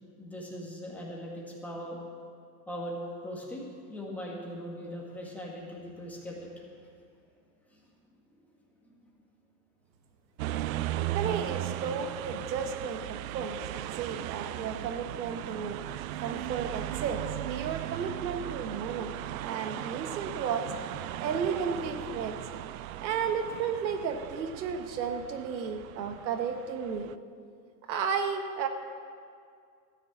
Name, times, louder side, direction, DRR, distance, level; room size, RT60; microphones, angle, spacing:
voice 1, 0.2-2.0 2.7-3.0 3.2-6.5 7.7-7.8 8.8-8.9, equal, 5° left, -4 dB, 1.9 m, -40 dB
sound 1, 10.4-27.2, right 14 dB, 55° right, 0.5 m, -37 dB
voice 2, 11.1-19.1 19.4-22.4 23.0-27.1 27.9-28.7, right 6 dB, 90° right, 6 dB, 1.4 m, -33 dB
13.5 x 6.6 x 8.2 m, 2.2 s
supercardioid pair, 145°, 50 cm